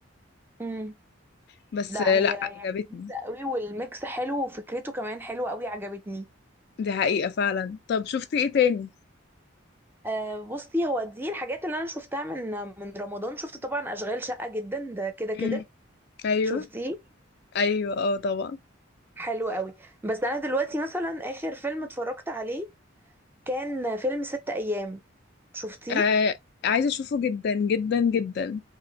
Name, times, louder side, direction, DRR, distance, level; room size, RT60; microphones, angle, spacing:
voice 1, 0.6-1.0 1.9-6.3 10.0-15.6 16.4-17.0 19.2-22.7 23.5-25.0 25.5-26.0, equal, 10° right, 0.5 m, -31 dB
voice 2, 1.7-2.3 2.6-3.1 6.8-8.9 15.4-15.6 16.2-16.6 17.5-18.6 25.9-26.3 26.6-28.6, left 6 dB, 55° left, 0.3 m, -25 dB
2.6 x 2.4 x 3.8 m
head